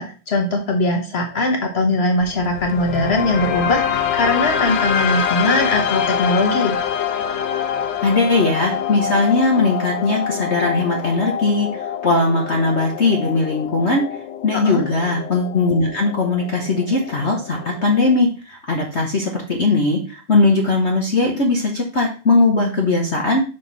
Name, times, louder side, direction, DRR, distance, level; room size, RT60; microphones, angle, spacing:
voice 1, 0.0-6.8 14.5-14.8, left 2 dB, 85° left, 3 dB, 0.5 m, -20 dB
sound 1, 2.2-18.2, left 8 dB, 65° left, 1.4 m, -25 dB
voice 2, 8.0-14.0 14.4-23.4, left 3 dB, 45° left, 0 dB, 0.9 m, -19 dB
5.7 x 5.2 x 4.0 m, 0.36 s
omnidirectional pair, 2.4 m